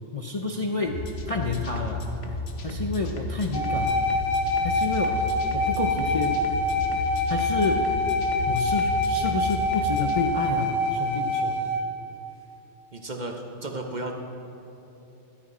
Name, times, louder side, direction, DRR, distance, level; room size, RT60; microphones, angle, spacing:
voice 1, 0.1-1.0 1.3-2.0 2.6-3.9 4.6-5.2 5.5-6.4 7.3-7.9 8.5-11.5, left 3 dB, 35° left, 1 dB, 0.6 m, -29 dB
sound 1, 0.8-10.1, left 1 dB, 60° left, 1.2 m, -34 dB
sound 2, 3.5-11.8, left 2 dB, 90° left, 1.8 m, -25 dB
voice 2, 12.9-14.1, right 2 dB, 40° right, 2 dB, 1.0 m, -34 dB
14.0 x 11.5 x 4.2 m, 2.9 s
omnidirectional pair, 1.3 m